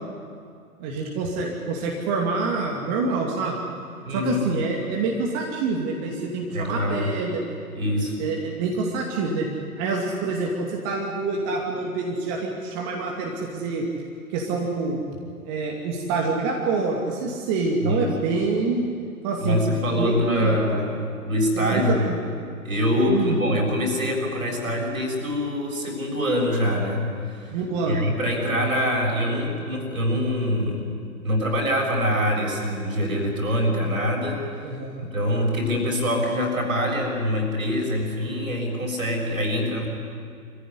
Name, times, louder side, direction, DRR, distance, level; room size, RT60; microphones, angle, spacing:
voice 1, 0.8-3.6 4.1-7.4 8.2-9.5 9.8-13.8 14.3-15.0 15.4-18.8 19.2-19.6 20.0-20.6 21.5-21.9 23.1-23.4 27.5-28.0 34.6-35.1, right 4 dB, 25° right, -1 dB, 2.6 m, -26 dB
voice 2, 4.0-4.5 6.5-7.1 7.7-8.2 17.8-18.1 19.4-21.0 21.2-22.1 22.6-27.6 27.8-30.9 31.2-34.4 35.0-39.9, left 1 dB, 70° right, 0 dB, 6.9 m, -24 dB
25.5 x 15.5 x 10.0 m, 2.3 s
figure-of-eight pair, 120°, 44 cm